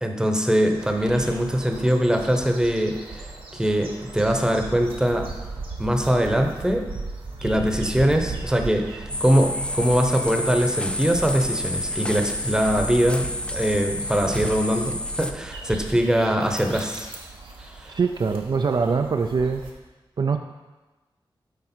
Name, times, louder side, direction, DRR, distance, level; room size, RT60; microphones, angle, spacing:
voice 1, 0.0-5.2 5.8-6.9 7.4-17.1 17.8-17.9, equal, 10° right, 4 dB, 0.9 m, -22 dB
sound 1, 0.7-19.7, right 3 dB, 85° right, 1.1 m, -37 dB
sound 2, 9.1-15.3, left 1 dB, 10° left, 0.4 m, -30 dB
voice 2, 17.9-19.6 20.2-20.4, right 5 dB, 55° right, 5 dB, 0.4 m, -23 dB
8.0 x 4.8 x 4.4 m, 1.2 s
wide cardioid pair, 70°, 9 cm